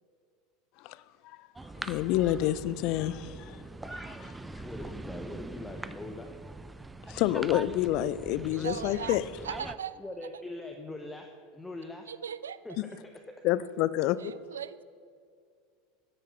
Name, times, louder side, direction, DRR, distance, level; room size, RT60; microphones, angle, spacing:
sound 1, 1.6-9.8, right 2 dB, 10° right, 0.5 m, -42 dB
voice 1, 1.8-3.6 3.8-4.3 7.1-9.2 13.4-14.2, left 14 dB, 55° left, 17 dB, 0.4 m, -28 dB
voice 2, 4.6-6.3 10.0-11.3 11.5-12.1 12.6-12.8, left 2 dB, 10° left, 4 dB, 0.9 m, -41 dB
voice 3, 8.5-9.2 9.4-10.0 12.1-12.6 14.2-14.8, right 8 dB, 80° right, 16 dB, 0.4 m, -38 dB
9.3 x 9.2 x 5.5 m, 2.3 s
figure-of-eight pair, 80°, 0 cm